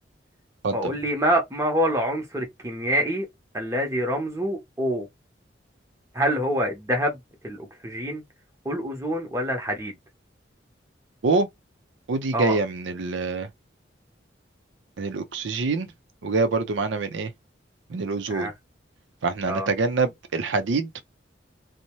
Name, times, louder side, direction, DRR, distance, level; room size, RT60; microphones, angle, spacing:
voice 1, 0.7-3.3 3.5-5.1 6.1-8.2 8.6-10.0 12.3-12.6 18.3-18.5 19.5-19.7, equal, 15° right, 0.8 m, -26 dB
voice 2, 12.1-13.5 15.0-15.9 16.2-17.3 17.9-18.5 19.2-21.0, right 3 dB, 80° right, 0.5 m, -25 dB
2.7 x 2.1 x 3.0 m
head